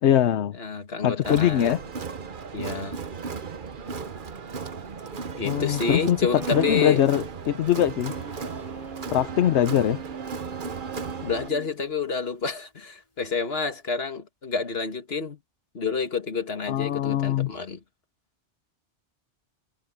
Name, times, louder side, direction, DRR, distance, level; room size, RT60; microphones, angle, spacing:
voice 1, 0.0-0.5 1.0-1.8 5.4-8.1 9.1-10.0 16.7-17.5, left 11 dB, 80° left, 1.0 m, -22 dB
voice 2, 0.6-1.8 2.5-3.0 5.3-7.1 11.2-15.4 15.7-17.8, left 5 dB, 60° left, 2.0 m, -29 dB
Crowd, 1.2-11.5, right 5 dB, 50° right, 1.1 m, -36 dB
sound 1, 6.2-7.1 8.1-11.7, right 6 dB, 80° right, 3.6 m, -39 dB
Guitar, 8.1-13.5, left 2 dB, 30° left, 4.5 m, -54 dB
omnidirectional pair, 1.1 m